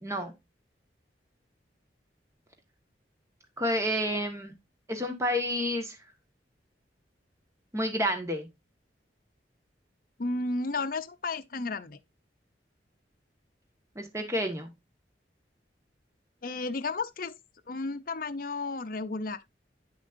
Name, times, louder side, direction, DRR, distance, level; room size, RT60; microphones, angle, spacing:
voice 1, 0.0-0.3 3.6-4.5 4.9-6.0 7.7-8.5 13.9-14.7, equal, 15° right, 1.5 m, -29 dB
voice 2, 10.2-12.0 16.4-17.3 17.7-19.4, left 3 dB, 50° left, 0.6 m, -33 dB
9.4 x 6.3 x 2.6 m
head